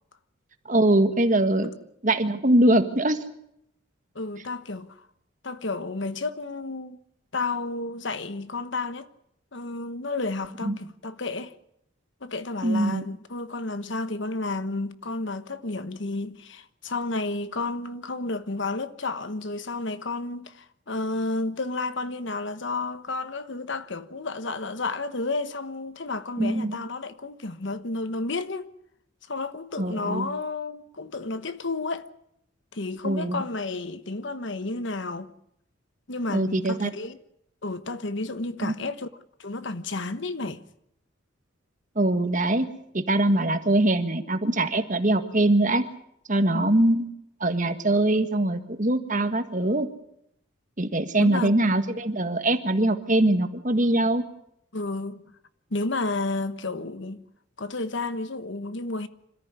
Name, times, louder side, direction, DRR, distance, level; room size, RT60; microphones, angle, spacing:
voice 1, 0.7-1.7 2.0-3.2 10.6-10.8 12.6-13.0 26.4-26.7 29.8-30.3 33.0-33.4 36.3-36.9 38.6-38.7 41.9-42.6 42.9-45.8 46.3-47.1 47.4-49.9 50.8-54.2, right 1 dB, 40° right, 1.7 m, -22 dB
voice 2, 4.1-5.1 5.4-7.0 7.3-9.1 9.5-11.5 12.2-28.7 29.3-32.0 32.7-35.3 36.1-37.2 37.6-39.1 39.4-40.6 46.5-46.7 51.2-51.5 54.7-55.2 55.7-57.2 57.6-59.1, left 3 dB, 60° left, 1.2 m, -31 dB
26.5 x 14.0 x 9.6 m
head